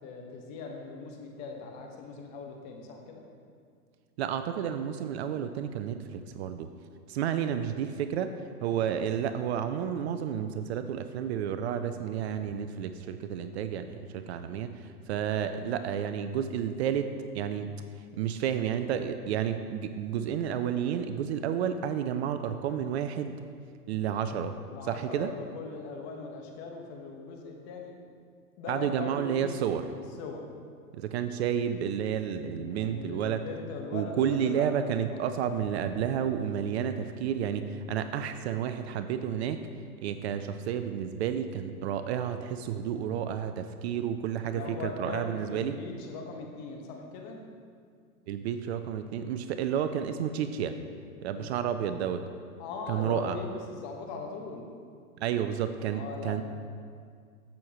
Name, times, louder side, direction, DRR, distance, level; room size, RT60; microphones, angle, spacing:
voice 1, 0.0-3.2 8.8-9.0 24.7-27.9 28.6-29.5 30.2-30.4 32.3-35.2 44.4-47.4 51.3-51.7 52.6-54.7 55.9-56.4, left 4 dB, 35° left, 2 dB, 1.4 m, -40 dB
voice 2, 4.2-6.7 7.1-17.7 18.1-23.3 23.9-24.6 24.8-25.3 28.7-29.9 30.9-33.5 33.9-39.6 40.0-45.8 48.3-50.8 51.2-52.2 52.9-53.4 55.2-56.4, right 8 dB, 45° right, 9 dB, 0.5 m, -31 dB
14.0 x 6.4 x 3.0 m, 2.2 s
hypercardioid pair, 125°, 45 cm